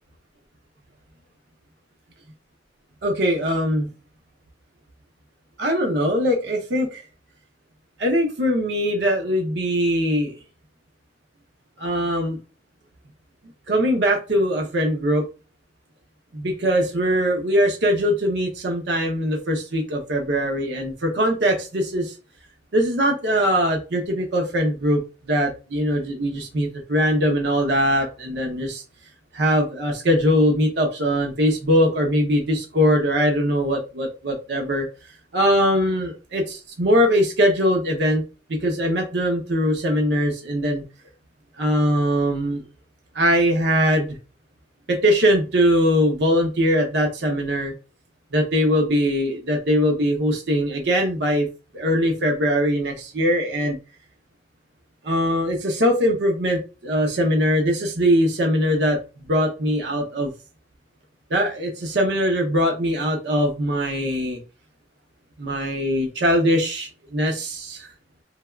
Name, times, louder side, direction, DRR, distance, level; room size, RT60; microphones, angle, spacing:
voice 1, 3.0-3.9 5.6-7.0 8.0-10.4 11.8-12.4 13.7-15.3 16.3-22.1 22.7-28.8 29.3-34.9 35.3-38.2 38.5-40.8 41.6-42.6 43.1-44.2 44.9-47.7 48.3-51.5 51.7-53.8 55.0-59.0 59.3-60.3 61.3-64.4 65.4-67.9, equal, 65° right, 1 dB, 0.6 m, -21 dB
3.3 x 2.2 x 2.3 m, 0.32 s
head